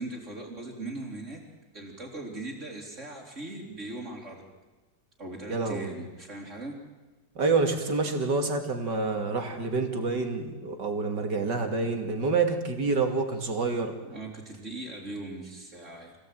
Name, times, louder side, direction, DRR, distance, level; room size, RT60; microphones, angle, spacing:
voice 1, 0.0-1.4 1.7-4.5 5.2-6.8 14.0-16.2, right 2 dB, 40° right, -4 dB, 3.6 m, -39 dB
voice 2, 5.5-5.9 7.3-14.0, right 4 dB, 60° right, 5 dB, 3.2 m, -27 dB
27.5 x 17.0 x 9.2 m, 1.2 s
omnidirectional pair, 2.1 m